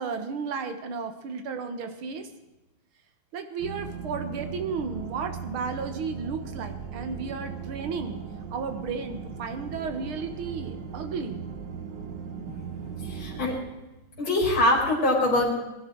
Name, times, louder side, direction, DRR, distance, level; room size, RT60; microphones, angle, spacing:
voice 1, 0.0-2.3 3.3-8.2 8.5-11.5, right 5 dB, 85° right, 8 dB, 2.2 m, -33 dB
sound 1, 3.6-13.6, right 7 dB, 65° right, 2.0 m, -38 dB
voice 2, 13.0-13.6 14.2-15.5, left 1 dB, 75° left, -4 dB, 4.0 m, -23 dB
20.0 x 11.5 x 4.6 m, 1.0 s
omnidirectional pair, 2.2 m